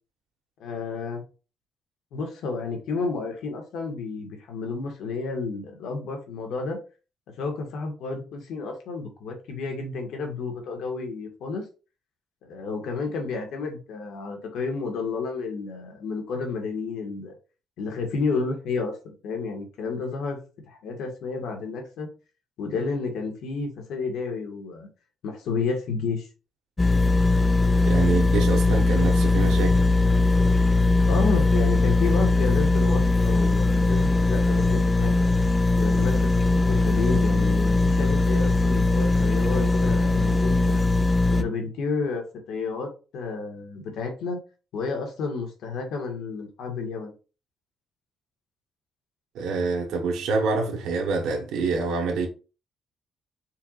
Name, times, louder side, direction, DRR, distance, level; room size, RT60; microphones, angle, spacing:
voice 1, 0.6-1.2 2.1-6.8 7.4-11.6 12.5-17.3 17.8-20.4 20.7-22.1 22.6-24.9 25.2-26.3 31.1-35.3 35.7-40.8 41.3-44.4 44.7-47.1, left 4 dB, 80° left, 1.6 m, -31 dB
sound 1, 26.8-41.4, left 3 dB, 20° left, 0.5 m, -20 dB
voice 2, 27.9-29.8 49.3-52.3, right 4 dB, 80° right, 1.1 m, -26 dB
4.6 x 4.5 x 2.4 m
cardioid pair, 90°, 0 cm